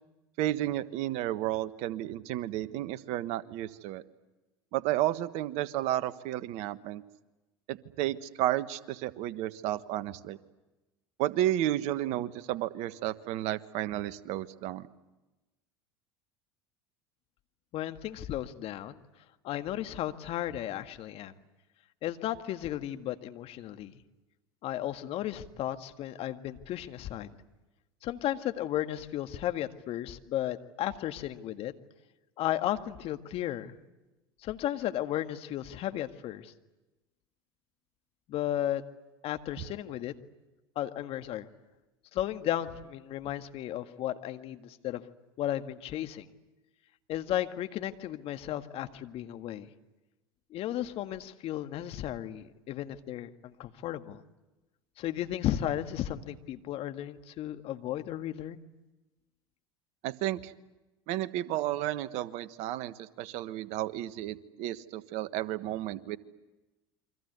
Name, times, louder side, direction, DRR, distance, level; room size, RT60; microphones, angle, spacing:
voice 1, 0.4-4.0 4.7-7.0 7.7-10.4 11.2-14.9 39.6-39.7 60.0-60.5 61.1-66.2, right 14 dB, 55° right, 14 dB, 1.4 m, -32 dB
voice 2, 17.7-19.0 19.4-21.3 22.0-24.0 24.6-27.4 28.0-31.7 32.4-33.8 34.4-36.5 38.3-38.8 39.2-40.1 40.8-41.5 42.1-45.0 45.4-46.3 47.1-49.7 50.5-54.2 55.0-58.6, left 12 dB, 50° left, 8 dB, 1.8 m, -34 dB
28.5 x 24.5 x 8.2 m, 1.1 s
hypercardioid pair, 80°, 13 cm